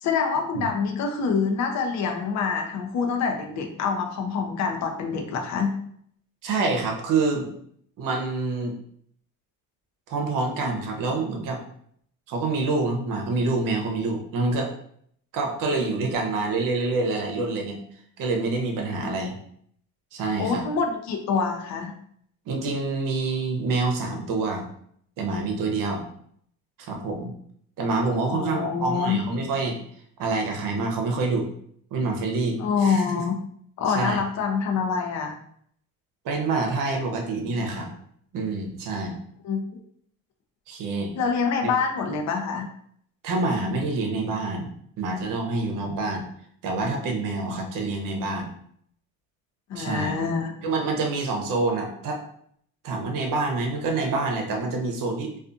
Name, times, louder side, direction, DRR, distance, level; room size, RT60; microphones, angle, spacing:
voice 1, 0.0-5.8 19.0-19.1 20.4-21.9 28.3-29.2 32.6-33.4 33.8-35.3 39.4-39.6 41.2-42.7 49.7-50.5, left 5 dB, 50° left, 3 dB, 0.6 m, -26 dB
voice 2, 6.4-7.5 8.0-8.7 10.1-11.6 12.3-14.7 15.3-17.8 18.2-19.4 20.1-20.6 22.5-24.6 25.2-26.0 26.8-27.3 27.8-29.8 30.2-31.5 31.9-33.3 33.9-34.2 36.2-37.9 38.3-39.2 40.7-41.1 41.6-41.7 43.2-44.7 45.0-46.2 46.6-48.5 49.7-50.1 50.6-52.2 52.8-55.3, right 3 dB, 65° right, 2 dB, 0.7 m, -27 dB
2.4 x 2.3 x 2.5 m, 0.65 s
cardioid pair, 105°, 35 cm